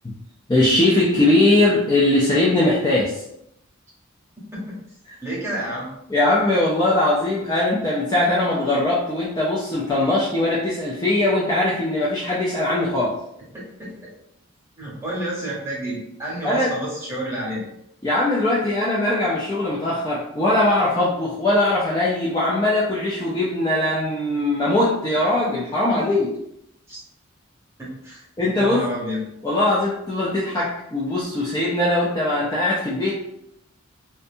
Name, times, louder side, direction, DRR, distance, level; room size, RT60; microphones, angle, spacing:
voice 1, 0.5-3.2 6.1-13.1 16.4-16.7 18.0-26.3 28.4-28.9 29.4-33.2, left 1 dB, 20° left, -6 dB, 0.3 m, -20 dB
voice 2, 5.2-5.9 13.8-14.1 14.8-17.6 26.9-27.0 27.8-28.2 28.6-29.2, right 1 dB, 10° right, -6 dB, 0.8 m, -29 dB
2.5 x 2.3 x 2.6 m, 0.78 s
head